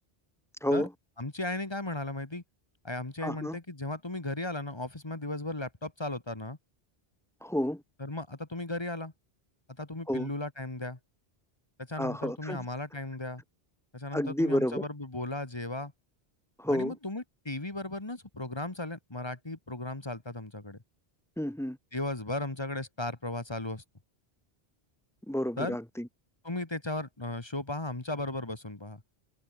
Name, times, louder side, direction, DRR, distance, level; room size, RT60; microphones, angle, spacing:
voice 1, 1.2-2.4 2.8-6.6 8.0-9.1 9.8-11.0 11.8-13.4 13.9-15.9 16.7-20.8 21.9-23.8 25.6-25.8 26.4-29.0, left 2 dB, 25° left, 1.7 m, -36 dB
voice 2, 3.2-3.6 7.4-7.8 10.1-10.3 12.0-12.6 14.1-14.8 16.6-16.9 21.4-21.8 25.3-26.1, equal, ahead, 2.5 m, -30 dB
omnidirectional pair, 1.1 m